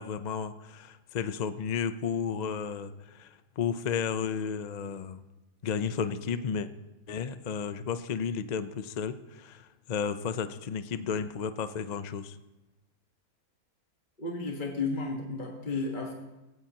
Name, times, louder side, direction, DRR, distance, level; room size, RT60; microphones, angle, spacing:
voice 1, 0.0-5.2 5.6-6.7 7.1-12.3, left 6 dB, 80° left, 11 dB, 0.3 m, -33 dB
voice 2, 14.2-16.1, left 3 dB, 30° left, 0 dB, 1.5 m, -33 dB
18.5 x 16.5 x 2.9 m, 1.0 s
omnidirectional pair, 1.7 m